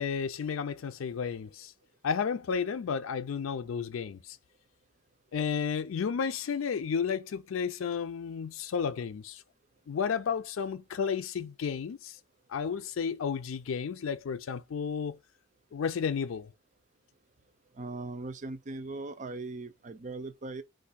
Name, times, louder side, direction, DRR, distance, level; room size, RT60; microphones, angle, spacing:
voice 1, 0.0-1.7 2.0-4.4 5.3-9.4 9.9-12.2 12.5-15.2 15.7-16.5, left 6 dB, 85° left, 0.4 m, -32 dB
voice 2, 17.7-20.6, right 3 dB, 40° right, 0.5 m, -39 dB
4.7 x 2.5 x 4.0 m
head